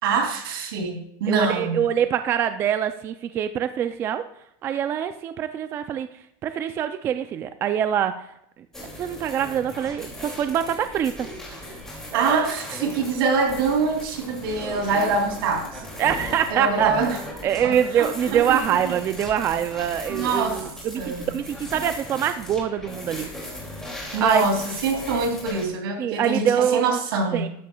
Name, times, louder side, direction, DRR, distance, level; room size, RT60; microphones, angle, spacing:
voice 1, 0.0-1.9 12.1-15.8 16.5-17.2 17.6-18.6 18.8-18.9 20.1-20.6 20.9-21.3 24.1-27.4, right 4 dB, 80° right, 2 dB, 2.7 m, -24 dB
voice 2, 1.3-4.3 4.6-6.1 6.4-8.3 9.0-11.3 12.1-12.5 16.0-17.1 17.4-23.3 24.2-24.4 26.0-27.0 27.3-27.5, right 9 dB, 20° right, 10 dB, 0.3 m, -24 dB
sound 1, 8.7-25.7, left 1 dB, 5° left, 2.4 m, -37 dB
12.5 x 10.5 x 2.3 m, 0.75 s
supercardioid pair, 165°, 12 cm